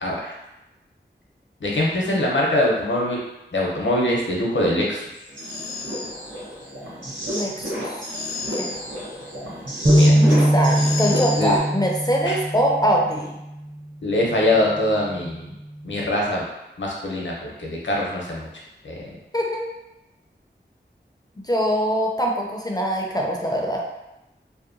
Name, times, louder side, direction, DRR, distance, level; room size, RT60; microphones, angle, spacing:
voice 1, 0.0-0.3 1.6-3.2 3.5-5.0 10.0-10.1 11.4-11.5 12.2-12.4 14.0-15.5 15.8-16.5 16.8-17.3 17.6-18.5 18.8-19.0, left 1 dB, 75° left, -3 dB, 0.7 m, -23 dB
sound 1, 5.3-11.6, left 1 dB, 90° right, 0.8 m, -30 dB
voice 2, 7.3-8.0 8.6-8.7 10.1-13.4 19.3-19.7 21.4-23.8, equal, 20° left, -1 dB, 0.4 m, -23 dB
sound 2, 9.9-13.4, equal, 35° right, 0.6 m, -20 dB
2.7 x 2.1 x 2.5 m, 0.92 s
wide cardioid pair, 55°, 19 cm